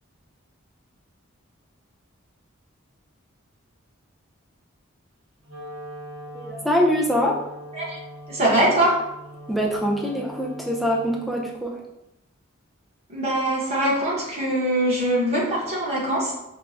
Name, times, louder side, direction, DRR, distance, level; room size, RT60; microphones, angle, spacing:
Wind instrument woodwind instrument, 5.4-11.5, equal, 75° right, 1.1 m, -41 dB
voice 1, 6.3-7.4 9.5-11.8, equal, ahead, -2 dB, 0.3 m, -24 dB
voice 2, 8.3-9.0 13.1-16.3, right 1 dB, 30° right, -5 dB, 0.8 m, -22 dB
4.5 x 2.0 x 2.4 m, 0.89 s
head